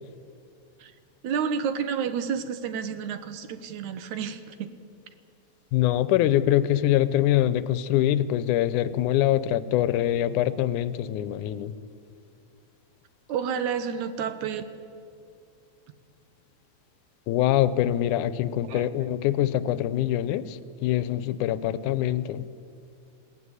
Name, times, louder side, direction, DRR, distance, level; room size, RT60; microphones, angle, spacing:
voice 1, 1.2-4.4 13.3-14.6 18.7-18.9, right 7 dB, 75° right, 10 dB, 2.5 m, -30 dB
voice 2, 5.7-11.7 17.3-22.4, left 12 dB, 90° left, 14 dB, 2.2 m, -24 dB
20.5 x 17.0 x 9.7 m, 2.5 s
omnidirectional pair, 3.5 m